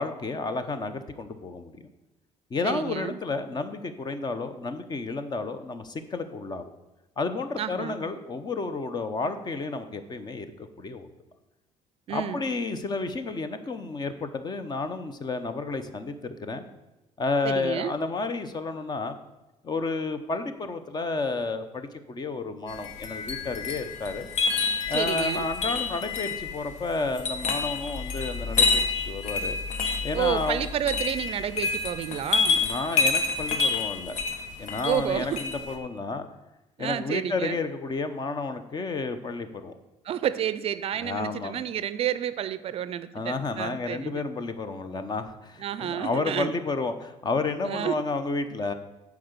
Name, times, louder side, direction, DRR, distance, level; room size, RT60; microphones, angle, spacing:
voice 1, 0.0-1.9 2.5-6.7 7.2-10.5 10.8-11.1 12.1-16.6 17.2-19.2 19.6-24.3 24.9-29.6 30.0-30.7 32.5-34.2 34.6-36.3 36.8-39.8 41.0-41.6 43.1-48.7, left 3 dB, 35° left, 10 dB, 0.8 m, -31 dB
voice 2, 2.6-3.2 7.6-8.0 12.1-12.4 17.4-17.9 24.9-25.5 30.1-32.6 34.8-35.4 36.8-37.6 40.0-44.2 45.6-46.5 47.6-48.0, right 10 dB, 50° right, 14 dB, 0.4 m, -30 dB
sound 1, 22.7-35.8, left 4 dB, 70° left, 1.1 m, -28 dB
8.5 x 4.8 x 6.7 m, 1.0 s
cardioid pair, 105°, 13 cm